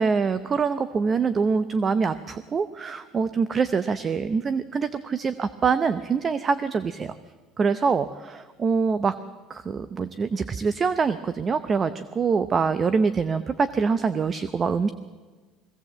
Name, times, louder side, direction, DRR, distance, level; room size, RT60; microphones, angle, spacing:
voice 1, 0.0-7.1 7.6-9.2 9.5-14.9, right 5 dB, 30° right, 13 dB, 0.7 m, -24 dB
21.5 x 17.0 x 7.6 m, 1.4 s
cardioid pair, 130°, 0 cm